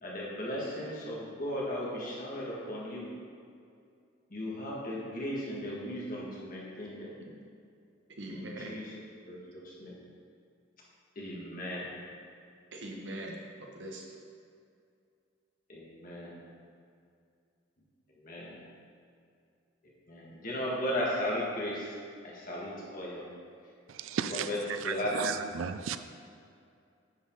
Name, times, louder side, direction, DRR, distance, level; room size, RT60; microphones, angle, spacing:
voice 1, 0.0-3.1 4.3-7.1 8.3-8.8 9.3-9.9 11.2-11.9 15.7-16.3 18.2-18.6 20.1-21.9 22.2-23.2 24.5-24.6 24.8-25.3, left 1 dB, 45° left, -5 dB, 1.9 m, -36 dB
voice 2, 8.2-8.8 12.7-14.2, right 1 dB, 65° right, 0 dB, 1.1 m, -42 dB
voice 3, 23.9-26.0, right 7 dB, 85° right, 11 dB, 0.4 m, -35 dB
9.5 x 5.5 x 3.9 m, 2.4 s
head